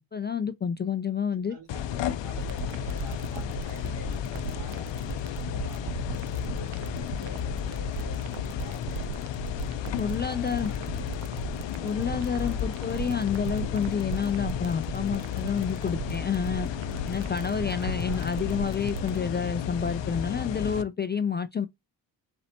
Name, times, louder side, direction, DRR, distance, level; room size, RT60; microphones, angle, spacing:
voice 1, 0.1-1.6 10.0-10.7 11.8-16.7 17.1-21.7, left 7 dB, 25° left, 0.3 m, -29 dB
voice 2, 1.3-9.6 10.0-11.5 12.6-13.0 15.3-16.1 17.5-18.3, right 1 dB, 65° right, 3.5 m, -48 dB
sound 1, 1.7-20.8, left 9 dB, 70° left, 0.6 m, -33 dB
sound 2, 2.4-19.2, right 10 dB, 85° right, 0.6 m, -37 dB
sound 3, 11.8-18.3, left 1 dB, ahead, 0.9 m, -51 dB
4.1 x 4.0 x 2.8 m
supercardioid pair, 50°, 46 cm